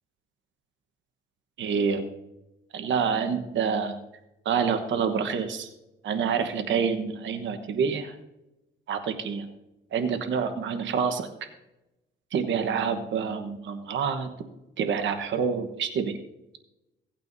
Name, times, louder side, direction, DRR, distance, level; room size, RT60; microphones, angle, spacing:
voice 1, 1.6-2.1 2.7-4.0 4.4-5.7 6.0-8.1 8.9-9.5 9.9-11.3 12.3-14.3 14.8-16.2, right 6 dB, 70° right, 8 dB, 1.2 m, -27 dB
17.5 x 8.9 x 2.7 m, 0.95 s
cardioid pair, 90°, 20 cm